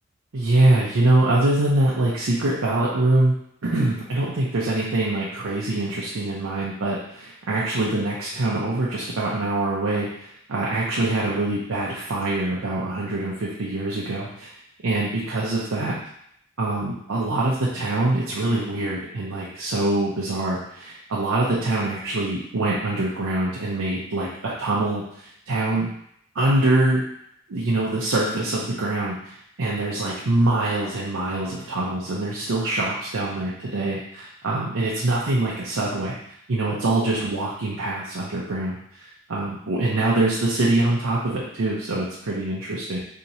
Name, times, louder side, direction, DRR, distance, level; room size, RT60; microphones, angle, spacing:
voice 1, 0.3-3.3 3.6-14.5 14.8-16.0 16.6-25.9 26.3-27.0 27.5-36.2 36.5-43.0, right 2 dB, 75° right, -5 dB, 0.6 m, -24 dB
4.4 x 2.8 x 2.7 m, 0.72 s
head